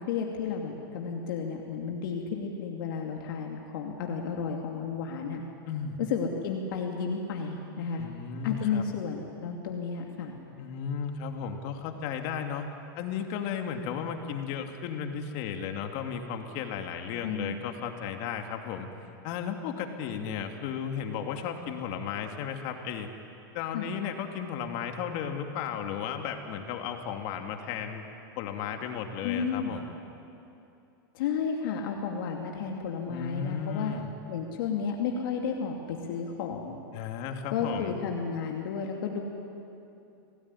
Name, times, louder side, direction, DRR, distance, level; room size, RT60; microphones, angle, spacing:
voice 1, 0.0-5.4 6.0-8.0 8.4-10.4 17.2-17.6 23.7-23.9 29.2-29.7 31.1-33.9 34.3-36.8 37.5-39.2, left 6 dB, 70° left, 1 dB, 2.6 m, -32 dB
voice 2, 5.7-6.0 8.0-8.8 10.6-12.7 13.0-18.9 19.2-23.1 23.5-28.1 28.4-29.9 33.1-34.1 36.9-38.0, left 7 dB, 50° left, 5 dB, 2.7 m, -34 dB
27.5 x 18.0 x 9.9 m, 2.8 s
supercardioid pair, 135°, 12 cm